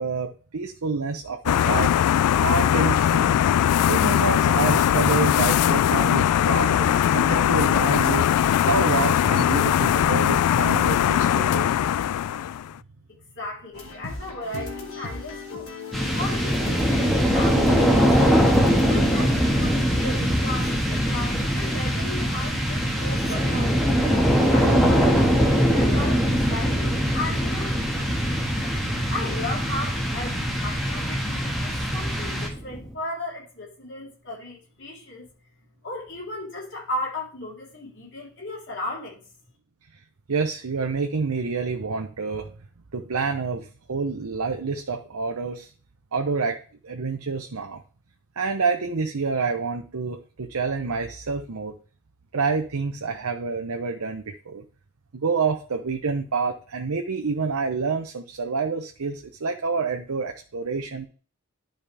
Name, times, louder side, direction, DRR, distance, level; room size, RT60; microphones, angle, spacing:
voice 1, 0.0-1.9 2.4-3.5 3.9-8.3 8.6-11.9 39.9-40.0 40.3-42.5 42.9-45.7 46.1-46.6 46.8-47.8 48.4-51.7 52.3-54.6 55.1-61.1, right 4 dB, 80° right, 5 dB, 0.8 m, -28 dB
sound 1, 1.5-12.7, left 10 dB, 90° left, 0.3 m, -20 dB
voice 2, 13.4-15.7 16.1-18.4 18.9-24.9 25.3-27.8 29.1-35.3 35.8-39.2, left 2 dB, 55° left, -3 dB, 3.6 m, -35 dB
sound 2, 13.7-19.4, left 4 dB, 70° left, 1.8 m, -39 dB
sound 3, 15.9-32.9, equal, ahead, 1.6 m, -22 dB
11.5 x 5.1 x 3.3 m, 0.39 s
head